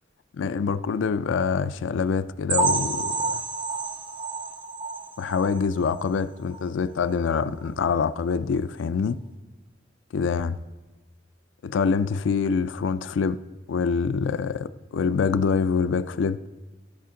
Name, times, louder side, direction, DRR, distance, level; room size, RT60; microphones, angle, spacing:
voice 1, 0.4-3.4 5.2-9.2 10.1-10.6 11.6-13.4 13.7-16.4, left 5 dB, 90° left, 0.4 m, -25 dB
sound 1, 2.5-6.1 6.5-6.7 7.0-7.1 7.6-7.7, right 3 dB, 25° right, 0.7 m, -29 dB
15.0 x 5.1 x 3.7 m
head